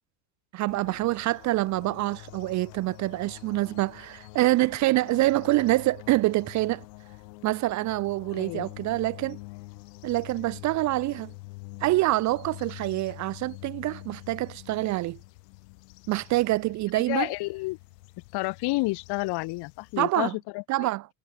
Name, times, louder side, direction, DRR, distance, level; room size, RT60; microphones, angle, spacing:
voice 1, 0.5-6.8 7.4-9.4 10.0-11.3 11.8-15.2 16.1-17.3 20.0-20.3 20.7-21.1, right 18 dB, 40° right, 0.5 m, -26 dB
sound 1, 0.7-20.0, left 24 dB, 80° left, 2.9 m, -46 dB
voice 2, 8.3-8.7 16.9-17.8 18.3-20.9, left 23 dB, 50° left, 0.9 m, -30 dB
supercardioid pair, 110°, 49 cm